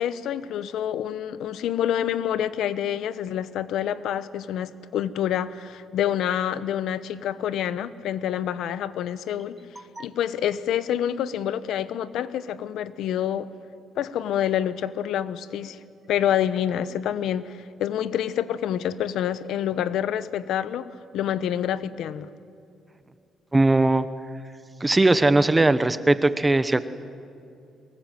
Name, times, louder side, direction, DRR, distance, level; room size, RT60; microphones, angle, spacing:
voice 1, 0.0-9.6 10.0-13.5 14.0-15.8 16.1-20.9 21.1-22.3, left 10 dB, 80° left, 15 dB, 1.0 m, -27 dB
voice 2, 23.5-24.0 24.8-26.8, right 2 dB, 15° right, 13 dB, 1.0 m, -19 dB
24.0 x 21.0 x 9.2 m, 2.6 s
cardioid pair, 90°, 0 cm